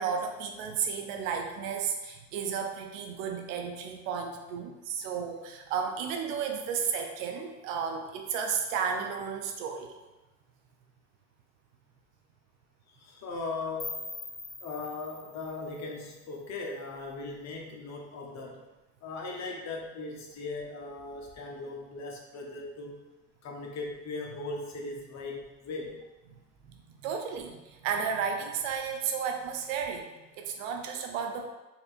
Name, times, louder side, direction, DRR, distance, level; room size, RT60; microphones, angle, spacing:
voice 1, 0.0-9.9 26.6-30.1 30.3-31.5, right 6 dB, 85° right, 4 dB, 0.6 m, -33 dB
voice 2, 12.9-14.0 14.6-18.6 19.0-23.0 23.4-26.0, left 3 dB, 45° left, 0 dB, 0.8 m, -38 dB
sound 1, 13.8-16.7, left 3 dB, 15° left, 0.4 m, -43 dB
4.2 x 2.6 x 2.5 m, 1.1 s
supercardioid pair, 85°, 38 cm